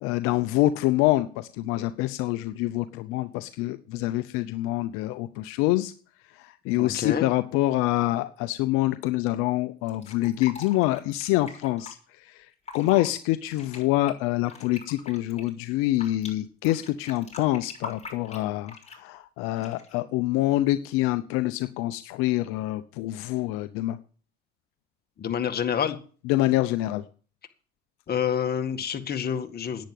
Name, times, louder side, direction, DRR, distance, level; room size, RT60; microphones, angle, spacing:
voice 1, 0.0-5.9 6.4-12.0 12.2-12.5 12.7-24.0 26.3-27.0, left 16 dB, 85° left, 11 dB, 0.7 m, -26 dB
voice 2, 6.7-7.3 25.2-26.0 28.1-29.8, left 8 dB, 50° left, 7 dB, 1.9 m, -28 dB
Fill (with liquid), 9.9-11.9 12.5-13.1 13.5-16.3 16.6-19.1 19.6-20.0, left 5 dB, 30° left, 6.4 m, -42 dB
10.5 x 9.5 x 7.7 m, 0.41 s
supercardioid pair, 80°, 21 cm